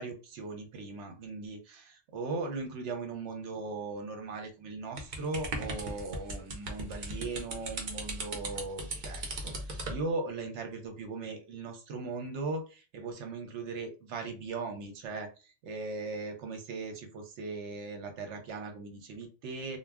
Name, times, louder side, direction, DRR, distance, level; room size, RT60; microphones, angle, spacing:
voice 1, 0.0-19.8, right 3 dB, 80° right, 5 dB, 1.0 m, -38 dB
sound 1, 5.0-10.0, right 2 dB, 50° right, 0.7 m, -38 dB
2.3 x 2.1 x 3.4 m, 0.32 s
omnidirectional pair, 1.2 m